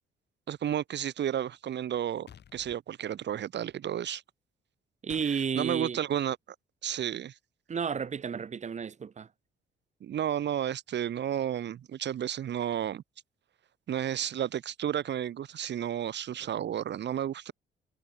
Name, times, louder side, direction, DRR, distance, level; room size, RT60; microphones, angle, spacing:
voice 1, 0.5-4.2 5.2-6.4 6.8-7.3 10.0-13.0 13.9-17.5, right 10 dB, 65° right, 1.9 m, -32 dB
sound 1, 2.3-2.8 5.1-5.3, left 9 dB, 60° left, 2.6 m, -50 dB
voice 2, 5.0-6.0 7.7-9.3, right 6 dB, 35° right, 0.9 m, -32 dB
cardioid pair, 90°, 20 cm